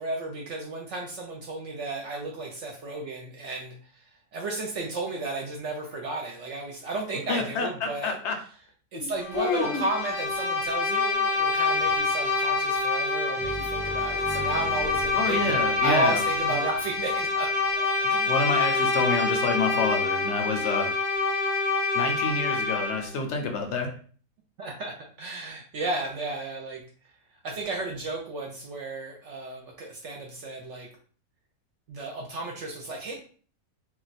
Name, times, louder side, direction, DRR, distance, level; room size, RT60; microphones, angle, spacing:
voice 1, 0.0-4.0 4.3-8.1 8.9-17.5 17.8-18.3 18.7-18.9 24.6-26.8 27.4-30.9 31.9-33.2, right 2 dB, 65° right, 0 dB, 0.8 m, -33 dB
voice 2, 7.3-8.4 9.0-9.1 9.3-9.8 15.1-16.2 18.3-20.9 21.9-23.9, left 4 dB, 65° left, 3 dB, 0.8 m, -28 dB
Bowed string instrument, 9.2-23.1, left 3 dB, 30° left, 0.7 m, -26 dB
sound 1, 13.4-18.0, equal, 15° right, 0.4 m, -42 dB
2.4 x 2.2 x 3.9 m, 0.43 s
omnidirectional pair, 1.5 m